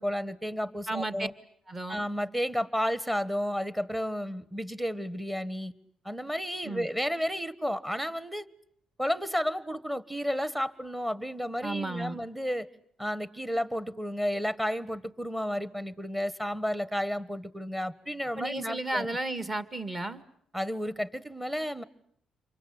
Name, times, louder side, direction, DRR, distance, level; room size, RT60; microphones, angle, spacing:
voice 1, 0.0-1.3 1.9-5.7 6.0-8.4 9.0-12.7 13.0-19.1 20.5-21.8, equal, 10° right, 16 dB, 1.5 m, -32 dB
voice 2, 0.9-1.3 1.7-2.1 6.6-6.9 11.6-12.2 18.4-20.2, right 2 dB, 25° right, 13 dB, 2.1 m, -33 dB
28.0 x 24.5 x 8.4 m, 0.66 s
cardioid pair, 90°, 0 cm